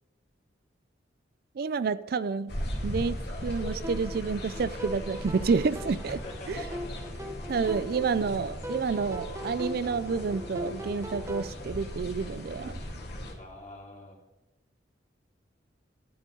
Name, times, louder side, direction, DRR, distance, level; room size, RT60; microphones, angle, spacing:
voice 1, 1.6-2.5 2.8-6.2 6.5-6.7 7.5-12.8, right 5 dB, 55° right, 15 dB, 0.4 m, -29 dB
sound 1, 2.5-13.3, equal, 60° left, 2.0 m, -38 dB
sound 2, 3.8-11.5, equal, 15° right, 0.7 m, -40 dB
voice 2, 6.1-7.1 7.5-8.0 13.4-14.2, left 2 dB, 40° left, -1 dB, 2.5 m, -45 dB
12.5 x 9.9 x 3.8 m, 0.99 s
head